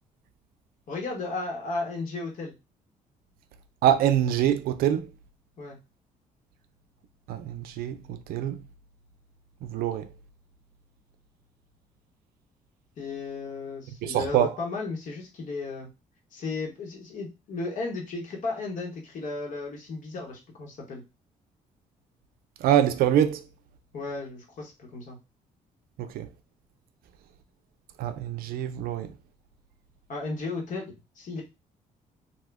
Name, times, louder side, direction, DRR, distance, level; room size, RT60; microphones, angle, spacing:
voice 1, 0.9-2.5 5.6-5.8 13.0-15.9 16.3-21.0 23.9-25.2 30.1-31.4, left 3 dB, 60° left, 1.2 m, -34 dB
voice 2, 3.8-5.1 7.3-8.6 9.6-10.1 14.0-14.5 22.6-23.4 26.0-26.3 28.0-29.1, right 10 dB, 85° right, 0.4 m, -25 dB
2.7 x 2.2 x 3.4 m
cardioid pair, 110°, 15 cm